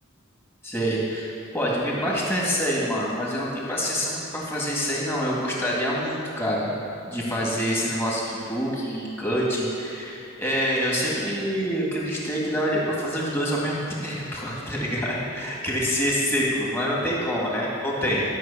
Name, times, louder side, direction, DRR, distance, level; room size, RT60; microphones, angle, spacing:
voice 1, 0.6-6.7 7.1-18.2, equal, 10° left, -5 dB, 2.0 m, -26 dB
13.0 x 6.2 x 8.4 m, 2.6 s
head